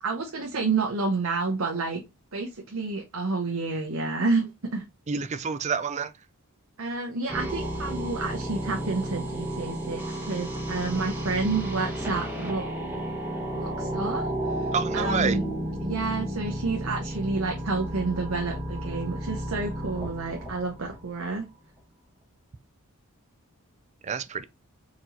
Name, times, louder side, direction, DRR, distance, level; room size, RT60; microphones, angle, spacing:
voice 1, 0.0-2.0 2.3-4.9 6.8-12.7 13.5-15.5 15.8-21.5, right 3 dB, 65° right, 0.8 m, -29 dB
voice 2, 5.1-6.1 14.7-15.4 24.0-24.4, right 6 dB, 30° right, 0.4 m, -28 dB
sound 1, 7.3-21.4, right 1 dB, 10° right, 1.0 m, -32 dB
4.4 x 2.9 x 3.8 m
head